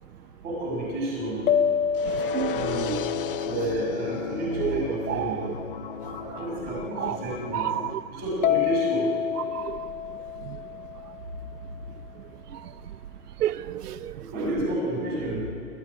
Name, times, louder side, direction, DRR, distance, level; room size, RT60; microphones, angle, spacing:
voice 1, 0.4-1.4 2.5-3.0 3.4-5.4 6.4-7.7 8.1-9.1 14.2-15.4, right 1 dB, 20° right, -2 dB, 6.2 m, -30 dB
sound 1, 1.5-5.0 8.4-11.5, left 8 dB, 60° left, 0.9 m, -28 dB
sound 2, 1.9-7.9, left 7 dB, 40° left, 0.6 m, -35 dB
voice 2, 2.1-2.6 2.9-3.0 4.6-4.7 5.1-5.4 7.0-7.2 7.5-8.0 9.5-9.9 13.4-14.1, right 11 dB, 90° right, 14 dB, 0.8 m, -30 dB
25.5 x 15.0 x 9.2 m, 2.9 s
hypercardioid pair, 170°, 45 cm